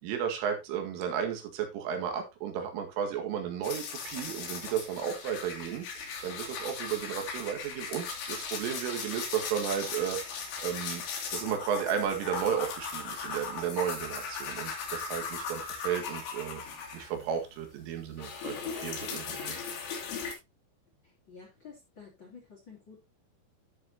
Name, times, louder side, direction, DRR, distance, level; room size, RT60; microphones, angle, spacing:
voice 1, 0.0-11.0 11.3-16.6 16.9-19.6, right 8 dB, 80° right, 4 dB, 4.4 m, -34 dB
sound 1, 3.6-17.4 17.7-20.3, left 5 dB, 80° left, 5.3 m, -38 dB
voice 2, 21.0-23.0, left 5 dB, 30° left, -1 dB, 2.9 m, -51 dB
13.0 x 7.2 x 2.8 m, 0.24 s
omnidirectional pair, 5.7 m